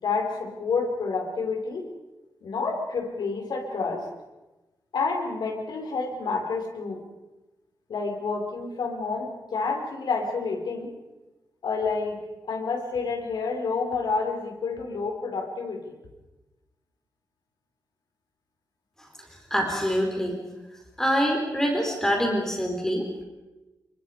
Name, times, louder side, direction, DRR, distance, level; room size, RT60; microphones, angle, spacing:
voice 1, 0.0-1.8 2.4-4.1 4.9-7.0 7.9-10.9 11.6-12.2 12.5-15.9, left 4 dB, 85° left, 2 dB, 5.1 m, -29 dB
voice 2, 19.5-20.3 21.0-23.2, equal, 5° left, 1 dB, 4.1 m, -25 dB
29.0 x 23.5 x 5.1 m, 1.1 s
wide cardioid pair, 160°, 7 cm